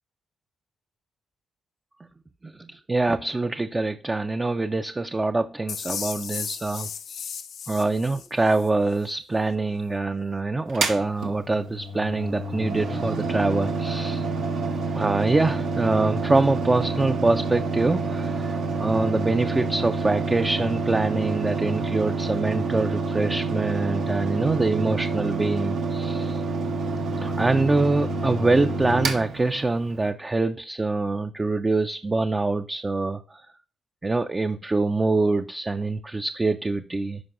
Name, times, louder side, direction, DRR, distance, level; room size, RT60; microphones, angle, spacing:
voice 1, 2.4-7.3 7.7-14.3 15.0-26.4 27.2-33.4 34.0-37.2, right 3 dB, 25° right, 7 dB, 0.4 m, -25 dB
sound 1, 5.7-8.7, left 7 dB, 75° left, 0.5 m, -35 dB
Mechanical fan, 10.7-30.1, right 3 dB, 85° right, 1.0 m, -28 dB
11.0 x 4.5 x 2.5 m, 0.42 s
supercardioid pair, 60°, 0 cm